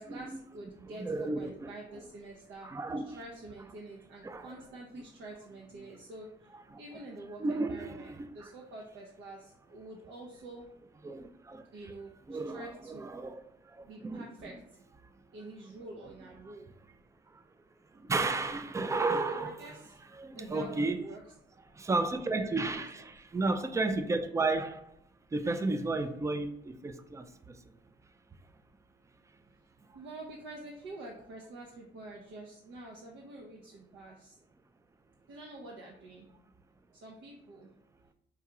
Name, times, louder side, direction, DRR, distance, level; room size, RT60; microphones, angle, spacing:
voice 1, 0.0-2.8 3.0-10.7 11.7-13.1 13.8-14.8 15.3-16.8 19.2-20.0 20.3-21.2 22.4-23.1 29.9-34.4 35.3-36.3 36.9-37.7, right 2 dB, 70° right, 0.6 m, -47 dB
voice 2, 1.0-2.0 2.6-3.0 4.2-4.6 6.7-6.8 7.4-8.5 11.0-11.6 12.3-13.4 14.0-14.2 18.1-19.6 20.2-21.0 21.8-24.8 25.3-27.2, right 3 dB, 15° right, 0.3 m, -32 dB
4.7 x 2.3 x 2.9 m
cardioid pair, 90°, 20 cm